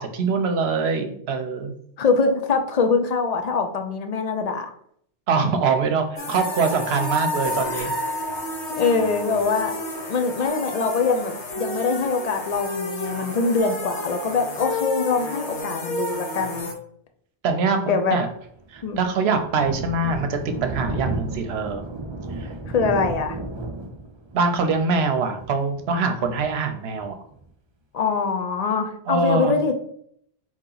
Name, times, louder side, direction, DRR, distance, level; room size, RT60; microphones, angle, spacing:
voice 1, 0.0-1.7 5.3-7.9 17.4-18.3 18.7-21.8 22.4-22.5 24.3-27.1 29.1-29.5, right 4 dB, 70° right, 6 dB, 0.8 m, -23 dB
voice 2, 2.0-4.7 8.8-9.8 10.1-16.7 17.9-18.2 18.8-19.0 22.7-23.4 27.9-29.7, left 4 dB, 50° left, 5 dB, 0.5 m, -23 dB
sound 1, 6.2-16.7, left 1 dB, 75° left, 1.2 m, -30 dB
Thunder, 18.3-27.4, right 2 dB, 45° right, 0.3 m, -34 dB
4.5 x 2.9 x 3.8 m, 0.67 s
omnidirectional pair, 1.2 m